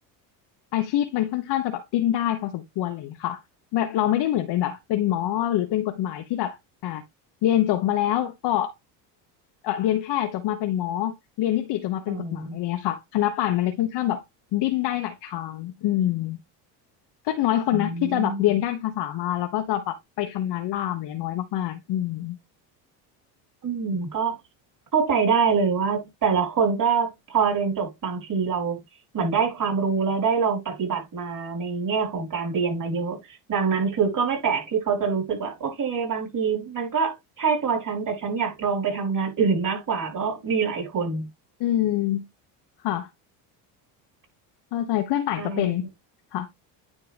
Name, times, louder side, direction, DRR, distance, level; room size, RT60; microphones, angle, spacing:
voice 1, 0.7-3.4 3.7-6.6 6.8-7.0 7.4-8.7 9.6-14.2 14.5-16.4 17.2-22.4 41.6-42.2 42.8-43.1 44.7-45.9 46.3-46.5, left 12 dB, 55° left, 1.2 m, -25 dB
voice 2, 12.1-12.6 17.7-18.4 23.6-24.4 24.9-28.8 29.1-41.3 45.4-45.8, right 5 dB, 40° right, 4.5 m, -25 dB
9.8 x 3.6 x 3.3 m
supercardioid pair, 85°, 47 cm